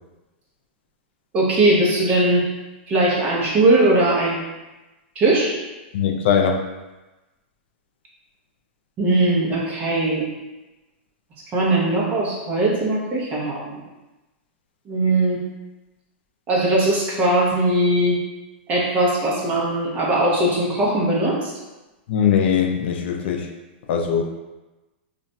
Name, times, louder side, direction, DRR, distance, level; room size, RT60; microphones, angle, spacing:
voice 1, 1.3-2.4 2.9-4.4 5.2-5.6 9.0-10.3 11.5-13.8 14.9-15.4 16.5-18.2 18.7-21.5, right 2 dB, 25° right, -4 dB, 0.7 m, -20 dB
voice 2, 5.9-6.6 22.1-23.5 23.9-24.2, left 7 dB, 65° left, 3 dB, 0.4 m, -20 dB
2.4 x 2.2 x 3.9 m, 1.1 s
supercardioid pair, 155°, 6 cm